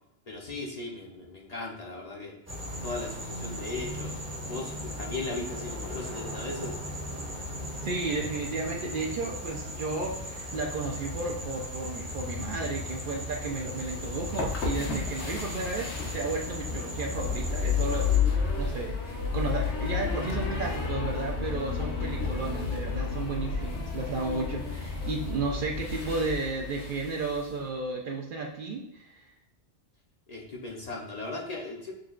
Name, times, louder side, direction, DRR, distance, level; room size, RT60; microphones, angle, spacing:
voice 1, 0.3-2.3 2.8-4.2 4.5-6.8 17.9-18.0 30.3-31.9, left 3 dB, 45° left, -2 dB, 0.6 m, -37 dB
sound 1, 2.5-18.2, left 1 dB, 15° right, 0.6 m, -37 dB
voice 2, 7.8-18.0 18.3-29.2, right 3 dB, 60° right, 1 dB, 0.6 m, -33 dB
sound 2, 13.7-27.5, left 6 dB, 75° left, 1.1 m, -31 dB
6.2 x 2.2 x 2.4 m, 0.86 s
omnidirectional pair, 1.1 m